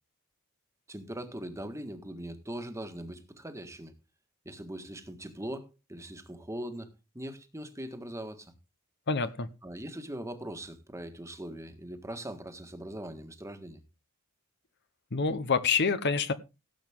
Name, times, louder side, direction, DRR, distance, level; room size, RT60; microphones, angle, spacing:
voice 1, 0.9-3.9 4.4-8.5 9.6-13.8, right 1 dB, 15° right, 7 dB, 1.6 m, -41 dB
voice 2, 9.1-9.5 15.1-16.3, left 5 dB, 50° left, 13 dB, 0.9 m, -27 dB
17.0 x 7.9 x 3.6 m, 0.28 s
head